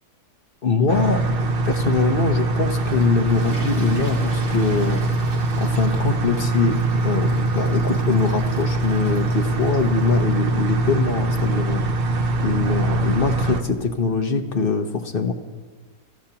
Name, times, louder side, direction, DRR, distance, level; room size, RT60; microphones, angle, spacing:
voice 1, 0.6-5.0 5.6-11.8 12.4-15.3, left 4 dB, 40° left, 6 dB, 1.0 m, -23 dB
sound 1, 0.9-13.6, right 2 dB, 45° right, 0.9 m, -23 dB
Water / Toilet flush, 2.6-10.3, right 1 dB, 75° right, 2.7 m, -40 dB
28.0 x 15.0 x 2.9 m, 1.4 s
omnidirectional pair, 1.7 m